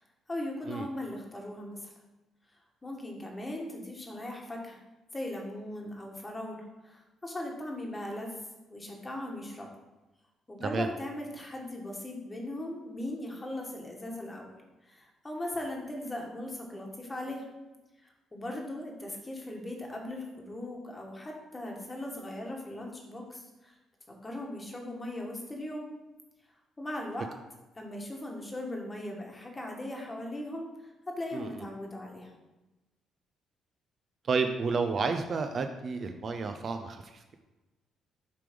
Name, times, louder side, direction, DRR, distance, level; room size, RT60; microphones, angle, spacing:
voice 1, 0.3-1.9 2.8-4.8 5.1-8.4 8.7-9.7 10.5-14.5 14.8-17.5 18.0-23.8 24.2-25.9 26.8-27.3 27.7-32.3, left 1 dB, 20° left, 0 dB, 1.3 m, -39 dB
voice 2, 34.2-37.3, right 4 dB, 45° right, 6 dB, 0.4 m, -31 dB
6.7 x 3.4 x 5.1 m, 1.1 s
cardioid pair, 115°, 0 cm